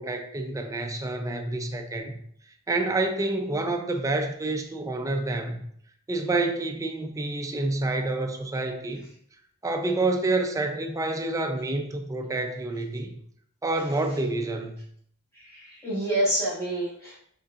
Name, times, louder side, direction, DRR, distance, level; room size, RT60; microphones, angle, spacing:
voice 1, 0.0-2.2 2.7-5.7 6.1-9.1 9.6-13.2 13.6-14.8, right 2 dB, 15° right, 0.4 m, -28 dB
voice 2, 15.5-17.2, right 1 dB, 15° left, 1.1 m, -27 dB
5.3 x 3.7 x 2.4 m
head